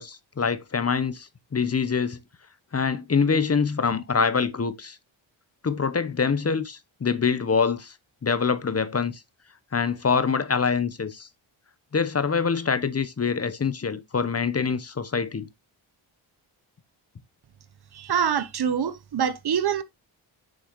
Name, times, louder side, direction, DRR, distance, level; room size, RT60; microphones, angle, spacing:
voice 1, 0.0-2.2 2.7-5.0 5.6-7.9 8.2-9.2 9.7-11.3 11.9-15.5, left 5 dB, 30° left, 0.9 m, -25 dB
voice 2, 17.9-19.8, right 8 dB, 50° right, 0.9 m, -25 dB
6.5 x 6.0 x 3.0 m
supercardioid pair, 50°, 49 cm